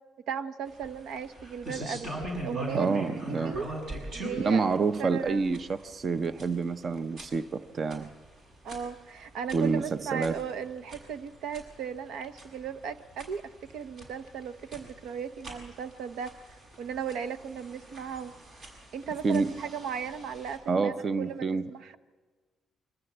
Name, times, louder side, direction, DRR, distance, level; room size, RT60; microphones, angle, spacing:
voice 1, 0.3-3.7 4.1-4.6 5.0-5.6 8.6-18.4 18.9-22.0, right 7 dB, 85° right, 11 dB, 0.8 m, -37 dB
sound 1, 0.7-20.6, right 1 dB, 65° right, 6.3 m, -43 dB
voice 2, 2.7-3.6 4.4-8.1 9.5-10.4 19.2-19.5 20.7-21.7, right 4 dB, 45° right, 12 dB, 0.7 m, -28 dB
24.0 x 14.5 x 7.9 m, 1.5 s
cardioid pair, 90°, 0 cm